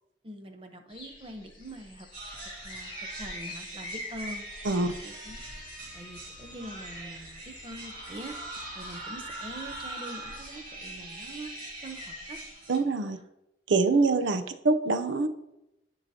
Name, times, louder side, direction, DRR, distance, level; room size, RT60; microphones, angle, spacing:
voice 1, 0.2-2.1 2.6-2.9 3.2-5.4 5.9-11.5 11.8-12.4, right 1 dB, 30° right, 6 dB, 0.7 m, -44 dB
sound 1, 0.9-12.5, left 1 dB, 25° left, 1.4 m, -46 dB
sound 2, 2.1-12.8, right 1 dB, 50° right, 2.3 m, -42 dB
voice 2, 12.7-13.2 13.7-15.3, right 3 dB, 90° right, 10 dB, 0.6 m, -25 dB
11.0 x 4.8 x 2.8 m, 0.89 s
head